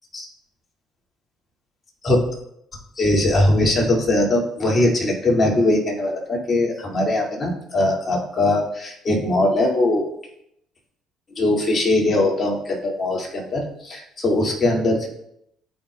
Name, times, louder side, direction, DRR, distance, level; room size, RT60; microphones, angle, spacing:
voice 1, 3.0-10.0 11.4-15.1, left 1 dB, 35° left, -1 dB, 2.4 m, -20 dB
14.0 x 4.6 x 2.4 m, 0.76 s
hypercardioid pair, 60°, 0 cm